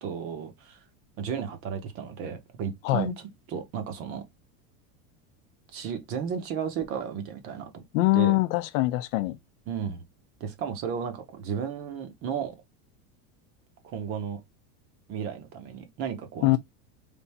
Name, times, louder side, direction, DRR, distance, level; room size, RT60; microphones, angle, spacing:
voice 1, 0.0-0.8 1.2-4.2 5.7-7.8 8.1-8.4 9.7-10.0 10.4-12.6 13.8-14.4 15.1-16.6, right 7 dB, 35° right, 0.8 m, -34 dB
voice 2, 7.9-9.4 16.4-16.6, left 19 dB, 70° left, 0.6 m, -23 dB
3.5 x 2.7 x 4.1 m
supercardioid pair, 175°, 42 cm